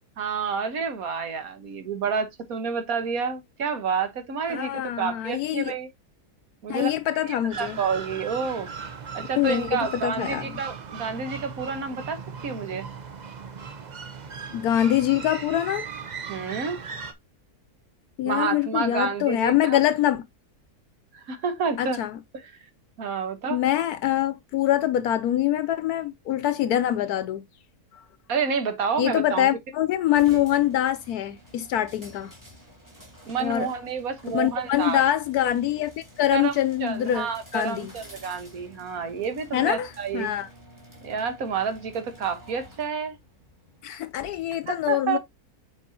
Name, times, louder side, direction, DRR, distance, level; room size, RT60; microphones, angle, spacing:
voice 1, 0.2-5.9 6.6-6.9 7.2-8.7 9.1-12.9 16.3-16.8 18.2-19.8 21.1-22.0 22.4-22.5 23.0-23.6 28.3-29.5 30.3-30.4 33.3-35.0 36.3-40.3 41.0-43.2 44.7-45.2, right 6 dB, 65° right, 1.6 m, -29 dB
voice 2, 4.5-5.7 6.7-7.8 9.4-10.6 14.5-15.9 18.2-20.2 21.8-22.2 23.5-27.4 29.0-32.3 33.4-33.7 34.3-35.9 36.2-37.9 39.5-39.9 40.1-40.5 43.8-45.2, left 12 dB, 75° left, 1.1 m, -24 dB
sound 1, 7.5-17.1, right 5 dB, 40° right, 0.6 m, -38 dB
sound 2, 30.1-44.5, equal, 10° right, 2.9 m, -50 dB
7.7 x 4.7 x 2.8 m
omnidirectional pair, 1.7 m